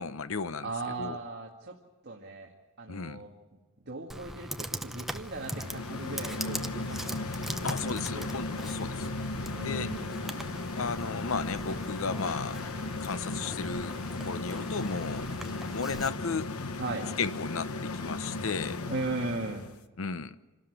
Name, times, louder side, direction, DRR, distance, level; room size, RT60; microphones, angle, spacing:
voice 1, 0.0-0.7 1.0-1.2 2.9-3.2 7.6-9.1 9.6-9.9 10.8-12.6 13.0-15.3 15.7-16.5 17.2-18.8 20.0-20.4, left 5 dB, 65° left, 13 dB, 0.8 m, -34 dB
voice 2, 0.6-1.7 2.0-2.5 2.8-3.3 3.9-8.3 9.5-10.1 16.8-17.1 18.9-19.7, right 2 dB, 55° right, 0 dB, 1.9 m, -37 dB
Computer keyboard, 4.1-16.1, right 1 dB, ahead, 0.7 m, -41 dB
sound 1, 5.2-19.8, left 2 dB, 85° left, 1.1 m, -36 dB
27.0 x 12.5 x 9.9 m, 1.2 s
head